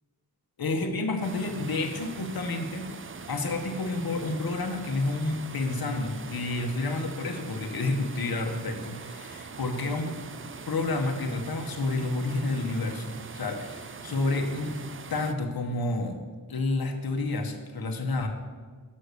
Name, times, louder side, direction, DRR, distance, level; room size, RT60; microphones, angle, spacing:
voice 1, 0.6-2.9 3.3-10.2 10.7-14.8 15.1-16.2 16.5-18.3, left 2 dB, 65° left, 4 dB, 0.9 m, -30 dB
sound 1, 1.2-15.3, right 5 dB, 35° right, 0.4 m, -42 dB
6.5 x 5.4 x 6.6 m, 1.5 s
wide cardioid pair, 105°, 39 cm